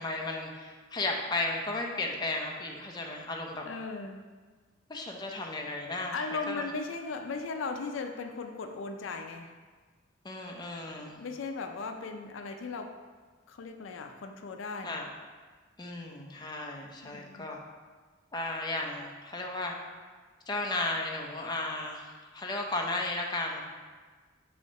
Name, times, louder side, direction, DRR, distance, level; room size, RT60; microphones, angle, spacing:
voice 1, 0.0-3.7 4.9-6.1 6.5-6.6 10.2-11.2 14.8-15.1 15.8-17.6 18.3-19.8 20.5-23.7, left 2 dB, 20° left, 0 dB, 0.6 m, -34 dB
voice 2, 3.7-4.2 6.1-9.5 11.2-12.9 13.5-15.0 17.0-17.5, left 4 dB, 75° left, 5 dB, 0.4 m, -37 dB
6.4 x 2.8 x 5.2 m, 1.4 s
head